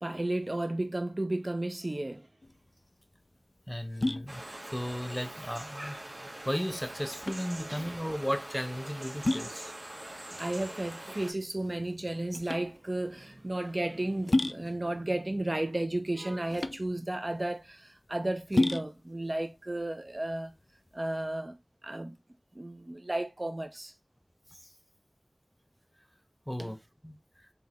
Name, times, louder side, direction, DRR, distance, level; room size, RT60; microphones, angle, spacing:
voice 1, 0.0-2.3 7.7-7.9 9.4-9.6 10.4-20.5 20.9-21.6 21.8-22.2 22.5-23.9 26.6-26.7, right 1 dB, 45° right, 0.8 m, -33 dB
sound 1, 2.4-21.0, left 2 dB, 65° left, 0.3 m, -35 dB
voice 2, 3.7-6.0 6.4-9.7 24.5-24.6 26.5-26.8 27.0-27.2, equal, 5° left, 1.0 m, -35 dB
sound 2, 4.3-11.3, right 1 dB, 80° right, 1.6 m, -43 dB
3.6 x 3.0 x 3.7 m
wide cardioid pair, 40°, 0 cm